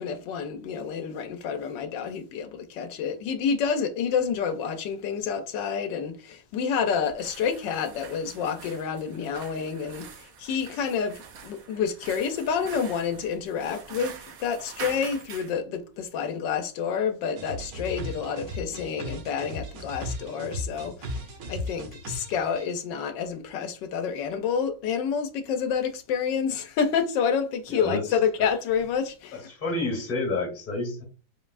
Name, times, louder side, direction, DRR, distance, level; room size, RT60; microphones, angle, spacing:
voice 1, 0.0-21.2 21.5-29.4, left 6 dB, 85° left, 1.3 m, -29 dB
sound 1, 7.0-15.6, right 7 dB, 60° right, 1.1 m, -44 dB
sound 2, 17.4-22.7, equal, 80° right, 1.7 m, -36 dB
voice 2, 27.7-28.2 29.3-31.0, left 2 dB, 30° left, 1.9 m, -30 dB
5.2 x 3.8 x 2.4 m
omnidirectional pair, 1.9 m